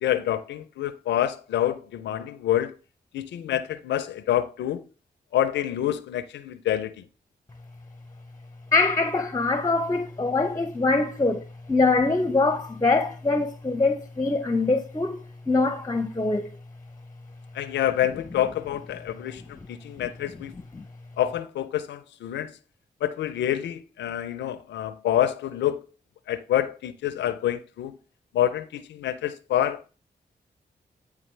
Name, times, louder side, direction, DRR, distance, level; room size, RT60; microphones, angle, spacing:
voice 1, 0.0-2.7 3.1-4.8 5.3-6.9 17.5-20.5 21.2-22.5 23.0-25.8 26.3-28.0 28.3-29.9, left 11 dB, 85° left, 0.4 m, -27 dB
voice 2, 8.7-15.2 15.5-16.6 20.0-20.1 20.7-20.8, left 3 dB, 20° left, 0.6 m, -23 dB
8.8 x 3.6 x 3.1 m
supercardioid pair, 40°, 18 cm